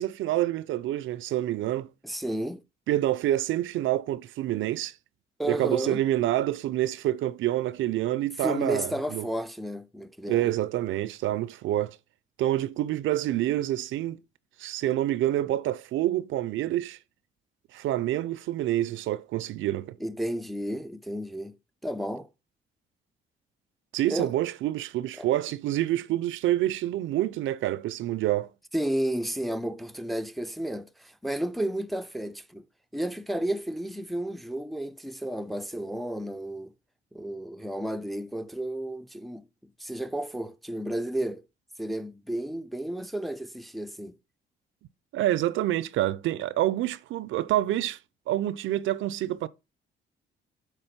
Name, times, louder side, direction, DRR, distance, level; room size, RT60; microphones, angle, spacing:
voice 1, 0.0-1.9 2.9-4.9 5.4-9.2 10.3-12.0 12.4-14.2 14.6-17.0 17.7-20.0 23.9-28.5 45.1-48.0 48.3-49.5, right 14 dB, 80° right, 0.5 m, -27 dB
voice 2, 2.0-2.6 5.4-6.0 8.4-10.6 20.0-21.6 21.8-22.3 24.1-24.3 25.2-25.3 28.7-32.6 32.9-36.7 37.1-41.4 41.8-44.2, right 1 dB, ahead, 0.5 m, -32 dB
8.1 x 3.5 x 5.7 m
cardioid pair, 90°, 20 cm